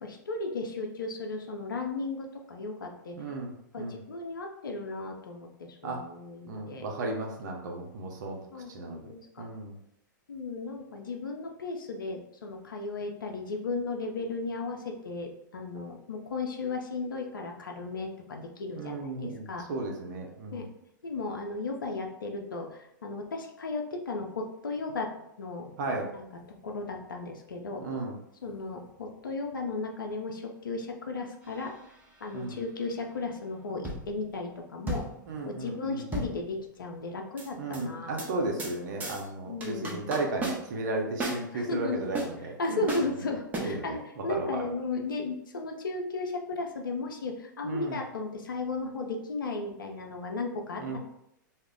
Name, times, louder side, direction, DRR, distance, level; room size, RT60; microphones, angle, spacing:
voice 1, 0.0-3.2 3.7-6.8 8.5-9.5 10.3-19.7 20.5-20.7 21.0-25.1 25.4-25.7 26.1-26.3 26.6-27.8 28.4-31.7 32.2-35.0 35.4-38.2 39.5-40.0 41.5-42.0 42.6-51.0, left 3 dB, 85° left, 2 dB, 0.5 m, -35 dB
voice 2, 3.2-4.0 5.8-6.0 6.5-9.1 9.4-9.8 18.7-20.7 25.8-26.1 27.8-28.1 32.3-32.6 35.3-36.1 37.6-42.8 43.6-44.0 44.3-44.6 47.6-48.0 50.8-51.0, right 2 dB, 65° right, 1 dB, 0.6 m, -35 dB
sound 1, 31.4-32.0 33.8-34.3 34.9-36.9 37.4-37.8 38.2-38.3 38.6-38.8 39.0-39.3 39.6-40.9 41.2-41.4 42.1-42.3 42.9-43.1 43.5-43.6, right 2 dB, 15° right, 0.6 m, -34 dB
2.1 x 2.0 x 3.7 m, 0.81 s
hypercardioid pair, 110°, 11 cm